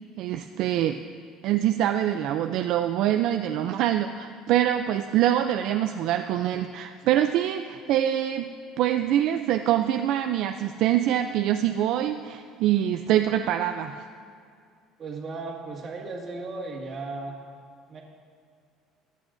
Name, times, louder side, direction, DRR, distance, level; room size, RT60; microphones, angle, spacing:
voice 1, 0.2-1.0 1.4-8.5 8.8-14.0, right 11 dB, 65° right, 6 dB, 0.4 m, -24 dB
voice 2, 15.0-17.4 17.9-18.0, right 3 dB, 35° right, -1 dB, 1.9 m, -35 dB
22.5 x 8.5 x 2.6 m, 2.3 s
cardioid pair, 140°, 0 cm